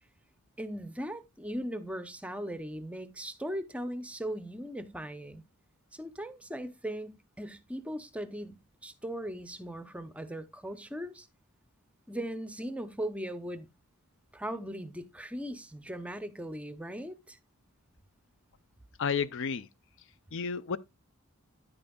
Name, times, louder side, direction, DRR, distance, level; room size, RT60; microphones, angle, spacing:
voice 1, 0.6-5.4 5.9-11.3 12.1-13.7 14.3-17.4, equal, 5° right, 0.6 m, -39 dB
voice 2, 19.0-19.7 20.3-20.8, left 6 dB, 60° left, 0.4 m, -31 dB
10.0 x 8.8 x 2.3 m
head